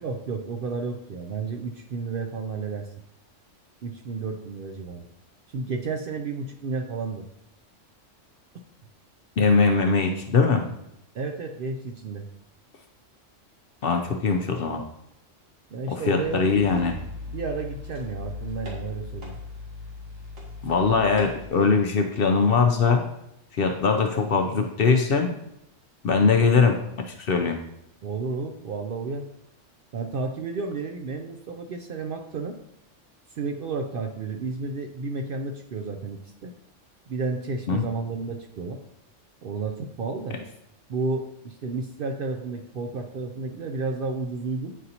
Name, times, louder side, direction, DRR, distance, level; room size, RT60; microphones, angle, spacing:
voice 1, 0.0-2.9 3.8-5.0 5.5-7.2 11.1-12.3 15.7-19.4 28.0-29.3 29.9-32.6 33.3-36.5 37.1-38.8 39.4-40.4 40.9-44.7, right 4 dB, 60° right, 3 dB, 0.6 m, -32 dB
voice 2, 9.4-10.6 13.8-14.8 15.9-17.0 20.6-23.0 23.5-25.3 26.0-27.6 37.7-37.8, left 5 dB, 60° left, 5 dB, 0.7 m, -21 dB
sound 1, 16.2-21.5, left 3 dB, 85° right, 1.9 m, -38 dB
9.2 x 4.0 x 2.8 m, 0.81 s
omnidirectional pair, 1.3 m